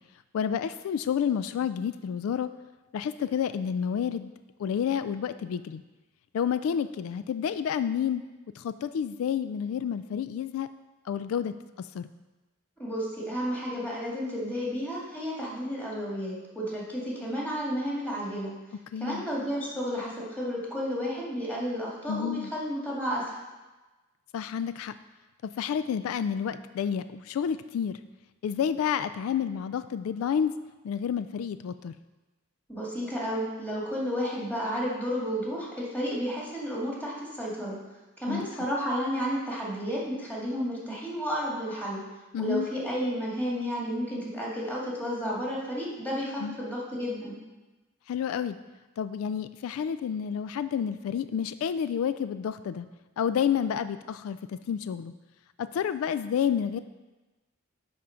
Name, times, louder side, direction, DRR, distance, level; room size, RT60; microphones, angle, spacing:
voice 1, 0.3-2.5 2.9-4.3 4.6-5.8 6.3-8.2 8.6-10.7 11.1-11.5 11.9-12.1 18.9-19.2 22.1-22.5 24.3-24.9 25.6-28.0 28.4-30.5 30.8-31.9 38.3-38.5 42.3-42.7 46.4-46.6 48.1-48.6 49.0-52.9 53.2-55.1 55.6-56.8, left 8 dB, 85° left, 13 dB, 0.3 m, -29 dB
voice 2, 12.8-18.5 18.9-23.4 32.7-37.8 38.2-42.0 42.4-47.4, equal, 10° left, -5 dB, 2.1 m, -32 dB
10.0 x 3.7 x 5.8 m, 1.2 s
head